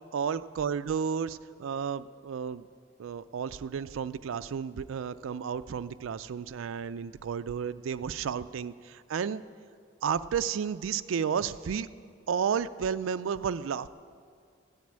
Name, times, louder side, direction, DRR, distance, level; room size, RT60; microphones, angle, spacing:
voice 1, 0.1-2.7 3.0-9.4 10.0-11.9 12.3-13.9, right 7 dB, 85° right, 12 dB, 0.4 m, -32 dB
13.0 x 9.5 x 8.7 m, 2.2 s
head